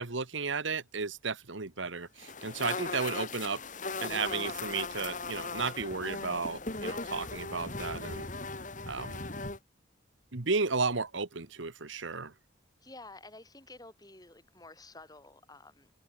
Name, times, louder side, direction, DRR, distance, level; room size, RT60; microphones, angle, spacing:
voice 1, 0.0-3.6 4.0-8.3 8.9-9.2 10.3-12.3, right 4 dB, 70° right, 1.4 m, -34 dB
sound 1, 2.2-9.6, left 3 dB, 40° left, 3.6 m, -38 dB
voice 2, 12.8-15.9, left 2 dB, 20° left, 3.9 m, -51 dB
open air
head